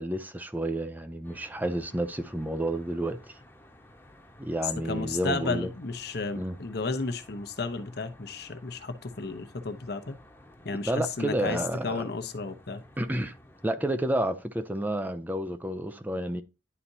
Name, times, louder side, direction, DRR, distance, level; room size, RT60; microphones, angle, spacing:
voice 1, 0.0-3.4 4.4-5.7 6.4-6.6 10.7-12.1 13.0-13.3 13.6-16.4, right 1 dB, 10° right, 0.5 m, -30 dB
Traffic noise roadway noise, 1.2-13.7, left 1 dB, 10° left, 1.1 m, -55 dB
voice 2, 4.8-10.2 10.6-12.8, left 3 dB, 60° left, 0.9 m, -33 dB
11.0 x 4.2 x 2.7 m
head